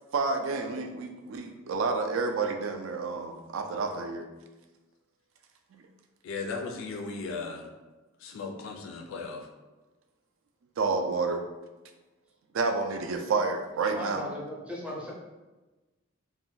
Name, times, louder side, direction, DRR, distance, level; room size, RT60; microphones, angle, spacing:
voice 1, 0.1-4.3 5.7-5.8 10.8-11.4 12.5-14.3, right 4 dB, 70° right, 5 dB, 0.4 m, -29 dB
voice 2, 6.2-7.7 8.2-9.5, left 4 dB, 65° left, 2 dB, 0.3 m, -36 dB
voice 3, 13.9-15.1, left 1 dB, 5° right, -3 dB, 0.5 m, -37 dB
2.5 x 2.1 x 3.8 m, 1.1 s
head